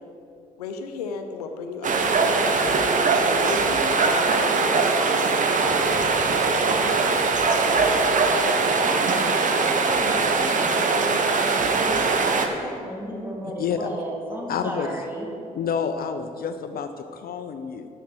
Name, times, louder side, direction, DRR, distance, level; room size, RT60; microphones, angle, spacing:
voice 1, 0.6-6.0 6.2-7.8, left 5 dB, 85° left, 6 dB, 0.7 m, -36 dB
sound 1, 1.8-12.5, right 4 dB, 40° right, 1.1 m, -21 dB
voice 2, 8.8-15.3, right 1 dB, 10° right, -3 dB, 2.7 m, -35 dB
voice 3, 13.6-13.9 14.5-15.0 15.5-17.9, left 7 dB, 50° left, 8 dB, 0.6 m, -29 dB
8.9 x 6.6 x 6.3 m, 2.5 s
hypercardioid pair, 50°, 19 cm